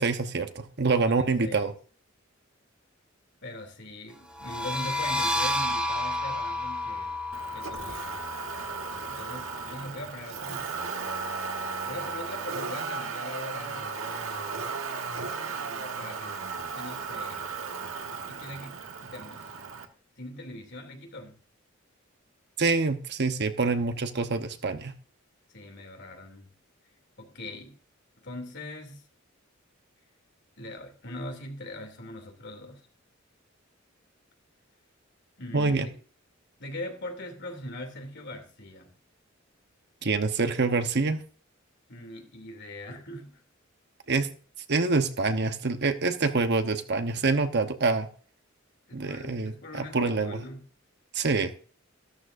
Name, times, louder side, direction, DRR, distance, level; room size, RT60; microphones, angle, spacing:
voice 1, 0.0-1.7 22.6-24.9 35.5-35.9 40.0-41.2 44.1-44.3 44.7-48.1 48.9-50.4 51.1-51.5, right 3 dB, 55° right, 1.0 m, -26 dB
voice 2, 0.9-1.7 3.4-7.1 7.5-8.3 9.1-10.7 11.9-14.0 15.5-17.5 18.3-19.5 20.2-21.4 25.5-26.5 27.2-27.7 28.2-29.0 30.6-32.9 35.4-35.9 36.6-38.9 41.9-43.4 48.9-50.7, left 1 dB, 60° left, 2.9 m, -41 dB
sound 1, 4.3-9.8, left 1 dB, 5° right, 2.6 m, -31 dB
Motor vehicle (road), 7.3-19.9, right 4 dB, 90° right, 1.5 m, -35 dB
14.0 x 13.0 x 2.6 m
head